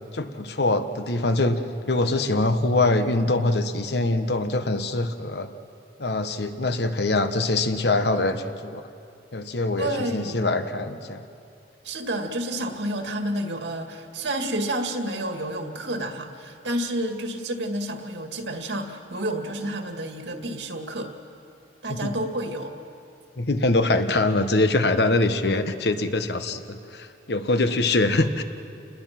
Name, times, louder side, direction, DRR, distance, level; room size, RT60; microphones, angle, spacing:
voice 1, 0.1-1.6 1.9-5.5 6.0-8.8 9.3-11.2 22.0-22.1 23.4-28.4, left 2 dB, 65° left, 9 dB, 1.2 m, -23 dB
voice 2, 9.8-10.4 11.8-21.1 21.8-22.8, right 1 dB, 75° right, 4 dB, 2.1 m, -30 dB
30.0 x 20.5 x 6.0 m, 2.6 s
head